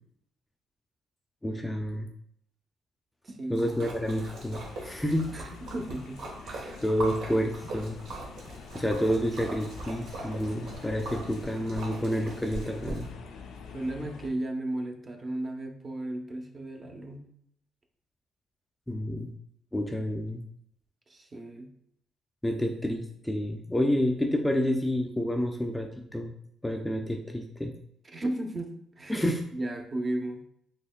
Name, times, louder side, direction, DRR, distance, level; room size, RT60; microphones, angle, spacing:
voice 1, 1.4-2.1 3.5-5.3 6.8-8.0 8.7-13.1 18.9-19.3 19.7-20.4 22.4-26.3 26.6-27.7 29.1-29.4, equal, 10° left, 3 dB, 0.3 m, -29 dB
voice 2, 3.2-3.7 5.3-6.8 13.7-17.3 21.1-21.7 28.1-29.2 29.5-30.4, right 1 dB, 35° right, 4 dB, 0.6 m, -35 dB
Splash splatter, 3.6-13.1, right 2 dB, 80° right, 0.8 m, -41 dB
sound 1, 4.1-14.3, left 5 dB, 85° left, 0.4 m, -46 dB
4.2 x 2.9 x 2.2 m, 0.70 s
cardioid pair, 90°, 0 cm